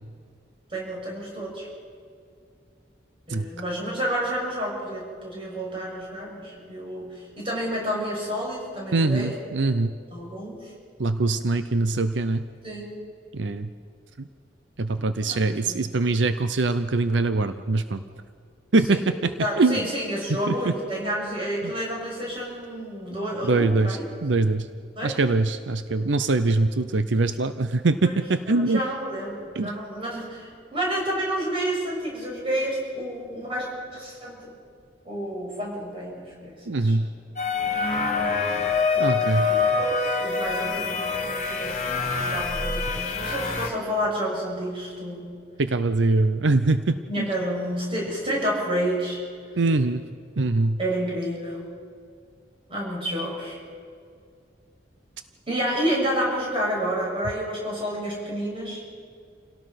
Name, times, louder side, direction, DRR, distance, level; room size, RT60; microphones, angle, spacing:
voice 1, 0.7-1.7 3.3-9.4 10.1-10.7 12.6-12.9 15.2-15.8 18.9-19.1 19.4-24.0 25.0-25.2 28.0-28.1 28.5-34.4 35.1-37.1 38.9-41.9 42.3-45.3 47.1-49.2 50.8-51.6 52.7-53.6 55.5-58.8, equal, 30° right, -3 dB, 7.0 m, -30 dB
voice 2, 8.9-9.9 11.0-12.4 13.3-13.7 14.2-14.3 14.8-18.0 18.7-19.3 19.6-19.9 20.5-20.7 21.6-21.7 23.4-24.7 25.0-28.8 29.5-29.7 36.7-37.1 39.0-39.5 45.6-47.3 49.6-50.0 50.4-50.8, right 3 dB, 85° right, 11 dB, 0.7 m, -23 dB
sound 1, 37.4-43.7, left 4 dB, 40° left, 2.4 m, -25 dB
28.5 x 17.5 x 5.9 m, 2.2 s
head